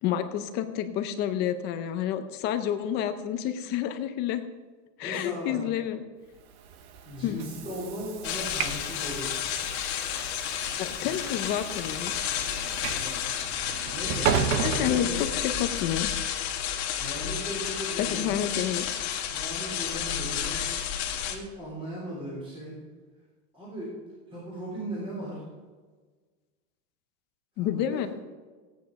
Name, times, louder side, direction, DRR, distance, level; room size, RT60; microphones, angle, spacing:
voice 1, 0.0-4.4 5.0-6.0 7.2-7.4 10.8-12.2 14.6-16.1 18.0-18.9 27.6-28.1, left 10 dB, 25° left, 9 dB, 0.5 m, -29 dB
voice 2, 5.0-5.6 7.0-9.4 11.0-11.2 12.9-13.2 13.6-15.2 16.9-18.4 19.2-20.6 21.3-22.8 23.5-23.9 24.3-25.4 27.6-28.0, equal, 15° right, -5 dB, 3.3 m, -38 dB
Train / Sliding door, 6.5-15.8, right 8 dB, 50° right, 0.9 m, -34 dB
sound 1, 8.2-21.4, left 9 dB, 55° left, 1.9 m, -31 dB
15.5 x 9.3 x 5.2 m, 1.4 s
supercardioid pair, 175°, 39 cm